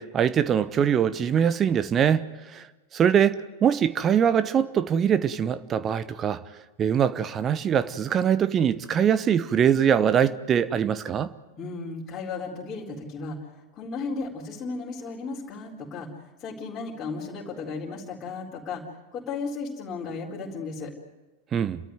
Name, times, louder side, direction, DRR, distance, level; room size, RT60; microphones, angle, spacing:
voice 1, 0.0-2.7 2.9-6.4 6.8-11.3 21.5-21.8, right 8 dB, 25° right, 0.9 m, -23 dB
voice 2, 11.6-20.9, left 4 dB, 25° left, 4.3 m, -35 dB
30.0 x 14.0 x 9.4 m
figure-of-eight pair, 90°, 0 cm